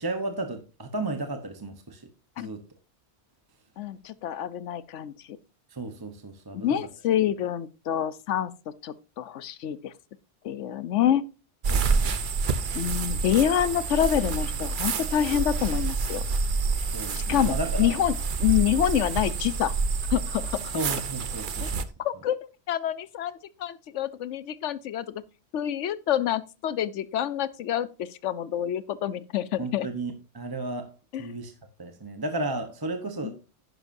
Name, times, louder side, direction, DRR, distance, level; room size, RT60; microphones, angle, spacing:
voice 1, 0.0-2.0 2.4-2.6 5.7-6.8 11.7-12.2 16.9-18.0 20.7-21.8 29.6-30.9 31.2-31.5 31.8-33.3, right 2 dB, 20° right, 0.9 m, -34 dB
voice 2, 3.8-5.4 6.5-9.9 10.4-11.3 12.7-16.2 17.1-19.7 20.1-20.6 21.6-21.7 22.0-25.2 25.5-29.9 31.1-31.3 33.2-33.3, left 10 dB, 80° left, 1.0 m, -27 dB
sound 1, 11.6-21.8, right 4 dB, 50° right, 0.8 m, -28 dB
11.0 x 10.0 x 2.7 m
omnidirectional pair, 1.2 m